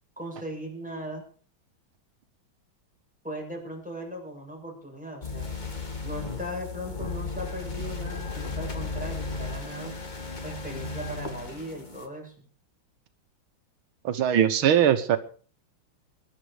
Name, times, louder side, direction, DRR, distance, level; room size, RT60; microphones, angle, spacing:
voice 1, 0.2-1.2 3.2-5.5 6.0-9.9 10.4-12.5, equal, 5° right, -1 dB, 7.2 m, -38 dB
sound 1, 5.2-12.1, left 4 dB, 25° left, 1.8 m, -35 dB
voice 2, 14.0-15.2, right 10 dB, 90° right, 10 dB, 1.9 m, -21 dB
21.5 x 11.5 x 5.0 m, 0.42 s
omnidirectional pair, 2.2 m